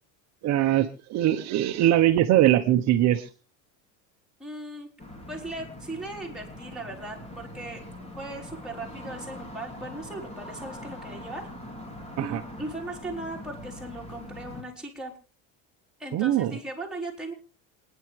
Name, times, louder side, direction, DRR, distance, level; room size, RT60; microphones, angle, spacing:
voice 1, 0.4-3.3 12.2-12.4 16.1-16.6, right 13 dB, 50° right, 5 dB, 1.2 m, -22 dB
voice 2, 4.4-4.9 5.3-7.8 8.2-11.5 12.2-15.1 16.0-17.3, right 2 dB, ahead, -2 dB, 4.3 m, -38 dB
sound 1, 5.0-14.6, left 1 dB, 15° left, 3.5 m, -42 dB
28.0 x 10.5 x 3.5 m, 0.35 s
cardioid pair, 135°, 35 cm